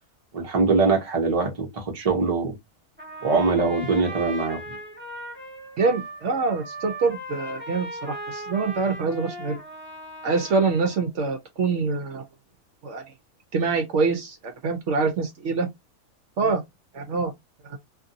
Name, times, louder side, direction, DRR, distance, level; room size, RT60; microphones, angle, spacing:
voice 1, 0.3-2.5 3.2-4.6, right 4 dB, 30° right, 0.8 m, -22 dB
Trumpet, 3.0-11.1, right 1 dB, 10° right, 1.1 m, -38 dB
voice 2, 5.8-9.6 10.2-12.2 12.8-13.0 13.5-15.7 16.4-16.6 16.9-17.3 17.6-17.8, right 4 dB, 65° right, 0.9 m, -25 dB
2.6 x 2.5 x 2.6 m
omnidirectional pair, 1.4 m